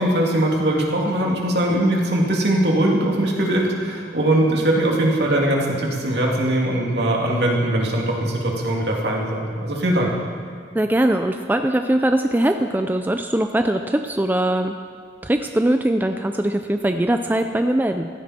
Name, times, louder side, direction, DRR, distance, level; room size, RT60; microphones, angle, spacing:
voice 1, 0.0-10.1, right 1 dB, 65° right, -2 dB, 2.5 m, -21 dB
voice 2, 10.7-14.7 15.2-18.1, right 1 dB, 10° right, 6 dB, 0.4 m, -21 dB
16.0 x 15.0 x 4.3 m, 2.1 s
head